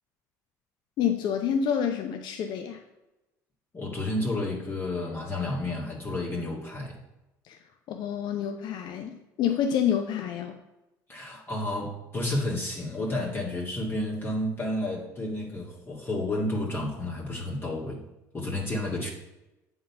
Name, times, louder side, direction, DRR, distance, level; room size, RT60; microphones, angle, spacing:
voice 1, 1.0-2.8 7.5-7.6 7.9-10.6, left 8 dB, 65° left, 5 dB, 0.7 m, -28 dB
voice 2, 3.7-7.0 11.1-18.0 18.3-19.1, left 1 dB, 30° left, -3 dB, 1.9 m, -31 dB
7.8 x 4.0 x 5.7 m, 0.97 s
supercardioid pair, 85°, 8 cm